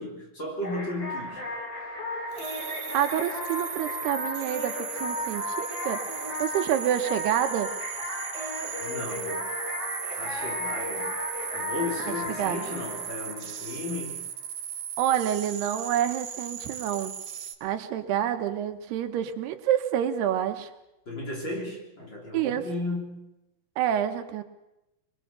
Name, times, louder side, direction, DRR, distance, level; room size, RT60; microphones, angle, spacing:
voice 1, 0.0-1.5 8.8-9.5 10.2-11.1 11.5-14.2 21.1-23.2, left 2 dB, 30° left, 0 dB, 3.6 m, -35 dB
sound 1, 0.6-14.1, left 2 dB, 45° left, 6.9 m, -35 dB
sound 2, 2.3-17.5, right 9 dB, 60° right, 2.8 m, -37 dB
voice 2, 2.9-6.0 6.4-7.7 12.1-12.6 15.0-17.1 17.6-20.7 22.3-22.6 23.8-24.4, right 10 dB, 75° right, 7 dB, 3.1 m, -28 dB
23.0 x 21.5 x 6.8 m, 0.91 s
omnidirectional pair, 4.8 m